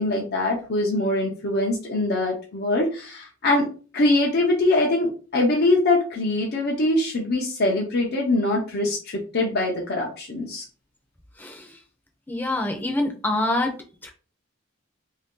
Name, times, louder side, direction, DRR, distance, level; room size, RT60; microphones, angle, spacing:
voice 1, 0.0-3.7 3.9-10.6, left 2 dB, 50° left, -1 dB, 0.7 m, -23 dB
voice 2, 11.4-11.7 12.3-13.7 14.0-14.1, left 1 dB, 10° left, 3 dB, 0.7 m, -25 dB
2.8 x 2.7 x 3.6 m, 0.37 s
head